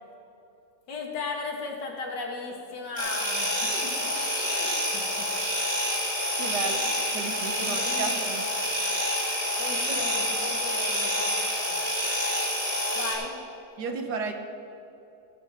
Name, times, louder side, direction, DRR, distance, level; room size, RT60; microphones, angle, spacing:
voice 1, 0.9-3.9 4.4-5.3 6.6-8.1 9.2-11.4 11.7-11.8 12.9-13.4, left 3 dB, 80° left, 1 dB, 2.4 m, -37 dB
sound 1, 3.0-13.1, equal, 20° right, 3.6 m, -28 dB
voice 2, 6.4-8.5 9.9-10.0 13.8-14.3, right 4 dB, 70° right, 5 dB, 1.7 m, -34 dB
17.5 x 11.5 x 3.7 m, 2.9 s
omnidirectional pair, 1.8 m